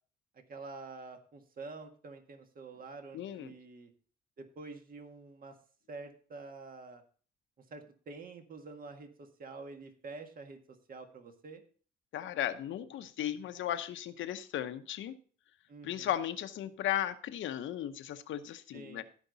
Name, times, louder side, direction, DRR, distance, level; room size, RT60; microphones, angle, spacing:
voice 1, 0.3-3.9 4.4-5.6 5.9-7.0 7.7-10.6 10.9-11.6 15.7-16.2 18.7-19.0, right 3 dB, 45° right, 5 dB, 1.7 m, -47 dB
voice 2, 3.1-3.5 12.1-15.1 15.8-19.0, left 11 dB, 75° left, 9 dB, 0.9 m, -36 dB
15.5 x 5.2 x 4.0 m, 0.43 s
cardioid pair, 90°, 20 cm